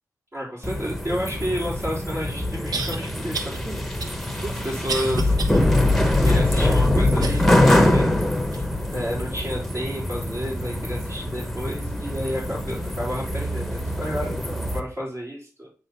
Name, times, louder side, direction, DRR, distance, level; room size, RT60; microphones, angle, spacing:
voice 1, 0.3-3.8 4.5-5.3 6.2-8.1 8.9-15.7, equal, 45° right, -5 dB, 3.2 m, -31 dB
sound 1, 0.6-14.8, left 1 dB, ahead, 1.0 m, -23 dB
sound 2, 1.7-1.8 2.7-3.0 3.3-3.6 4.0-5.6 6.1-6.2 7.2-8.0 8.5-8.6 9.4-9.5, right 4 dB, 85° right, 1.0 m, -31 dB
8.8 x 3.1 x 5.7 m, 0.40 s
wide cardioid pair, 90°, 6 cm